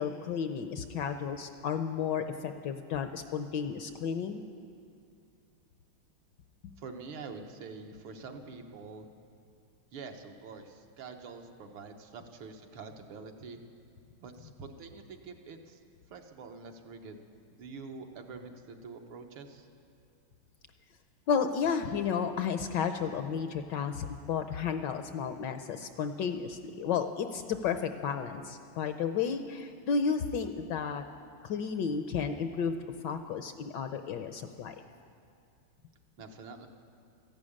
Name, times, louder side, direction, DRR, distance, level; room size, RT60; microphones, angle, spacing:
voice 1, 0.0-4.4 21.3-31.0 31.4-32.7 33.0-34.8, left 6 dB, 70° left, 8 dB, 1.1 m, -32 dB
voice 2, 6.8-9.1 9.9-13.6 14.2-15.8 16.1-17.2 17.6-19.7 36.2-36.7, right 4 dB, 75° right, 4 dB, 1.9 m, -46 dB
14.0 x 11.5 x 8.6 m, 2.3 s
omnidirectional pair, 2.3 m